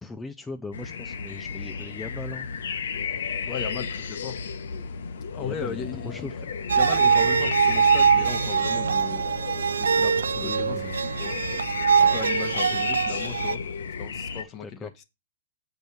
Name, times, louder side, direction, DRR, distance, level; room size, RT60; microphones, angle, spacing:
voice 1, 0.0-2.5 5.4-6.5 10.4-11.1 14.4-14.9, left 3 dB, 10° left, 0.7 m, -39 dB
sound 1, 0.7-14.4, left 6 dB, 70° left, 1.0 m, -33 dB
voice 2, 3.5-4.4 5.3-6.3 6.8-9.3 9.8-11.4 12.0-13.6 14.0-15.0, left 8 dB, 35° left, 1.3 m, -36 dB
sound 2, 6.7-13.6, right 6 dB, 85° right, 0.3 m, -23 dB
7.9 x 5.3 x 4.5 m
hypercardioid pair, 120°, 0 cm